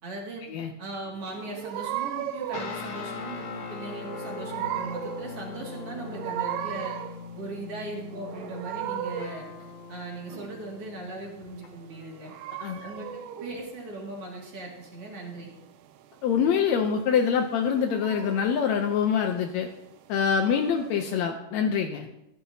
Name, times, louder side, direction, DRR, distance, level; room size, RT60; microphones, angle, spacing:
voice 1, 0.0-0.5 0.8-6.9 7.3-12.3 12.8-15.5, right 2 dB, 45° right, -1 dB, 2.9 m, -39 dB
sound 1, 1.3-21.2, right 11 dB, 80° right, 2.2 m, -38 dB
sound 2, 2.5-12.2, left 5 dB, 65° left, 2.6 m, -41 dB
voice 2, 16.2-19.7 20.1-22.1, left 7 dB, 85° left, 4 dB, 1.5 m, -25 dB
14.5 x 11.5 x 2.8 m, 0.86 s
omnidirectional pair, 4.1 m